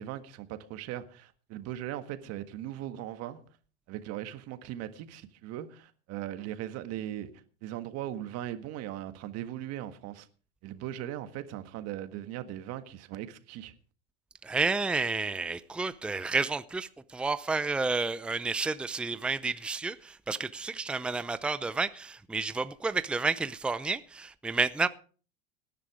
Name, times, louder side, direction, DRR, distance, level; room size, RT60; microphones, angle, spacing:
voice 1, 0.0-3.4 3.9-7.3 7.6-10.3 10.6-13.7, right 12 dB, 50° right, 1.7 m, -39 dB
voice 2, 14.4-24.9, right 4 dB, 5° right, 0.6 m, -30 dB
18.0 x 10.5 x 4.9 m
supercardioid pair, 115°, 31 cm